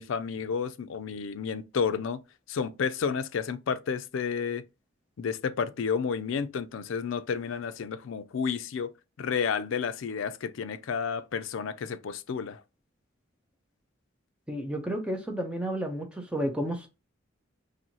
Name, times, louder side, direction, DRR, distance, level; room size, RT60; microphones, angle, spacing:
voice 1, 0.0-2.2 2.5-4.6 5.2-8.9 9.2-12.6, left 6 dB, 65° left, 0.4 m, -31 dB
voice 2, 14.5-16.9, equal, 5° right, 0.6 m, -31 dB
4.2 x 2.6 x 2.9 m
head